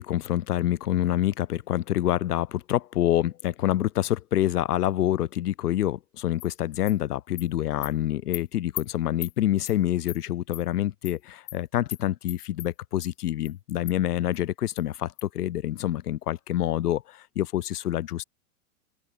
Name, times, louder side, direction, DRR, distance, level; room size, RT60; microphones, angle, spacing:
voice 1, 0.0-18.2, left 12 dB, 85° left, 1.8 m, -27 dB
Animal, 6.4-6.5 6.9-7.0 7.4-7.5 7.8-7.9 8.3-8.4 8.8-8.9 9.2-9.3 9.7-9.8 10.1-10.2 10.5-10.6 11.0-11.2 11.5-11.6 11.9-12.0 12.3-12.7 13.0-13.1 13.4-13.5 13.9-14.0 14.3-14.4 14.8-14.9 15.2-15.3, left 28 dB, 40° left, 4.9 m, -37 dB
open air
supercardioid pair, 150°, 45 cm